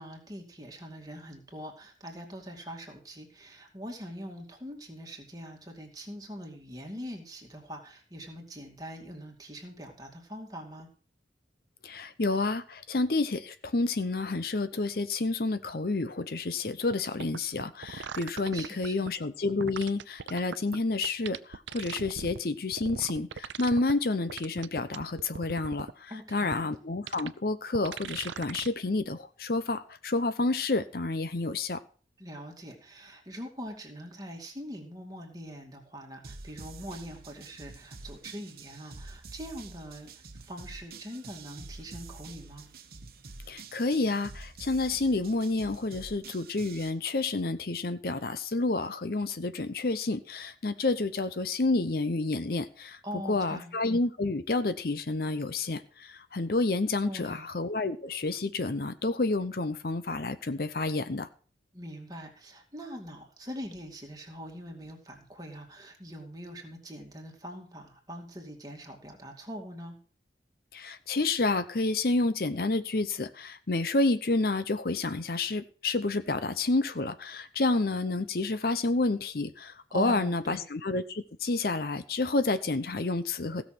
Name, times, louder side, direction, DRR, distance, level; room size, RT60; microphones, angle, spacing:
voice 1, 0.0-10.9 18.5-19.1 26.1-26.7 32.2-40.1 40.4-42.7 53.0-53.7 57.0-57.5 61.7-70.0 79.9-80.7, equal, 20° right, 2 dB, 2.3 m, -43 dB
voice 2, 11.8-31.8 43.5-53.0 53.3-61.3 70.7-83.6, left 3 dB, 55° left, 12 dB, 0.7 m, -29 dB
sound 1, 16.9-17.0 17.2-19.1 19.6-20.8 21.0-22.4 22.7-23.9 24.3-25.9 26.5-26.6 27.1-27.3 27.7-28.7 29.0-29.1, right 6 dB, 90° right, 0.6 m, -39 dB
sound 2, 36.2-46.9, right 3 dB, 55° right, 1.2 m, -47 dB
16.0 x 6.4 x 6.0 m, 0.40 s
head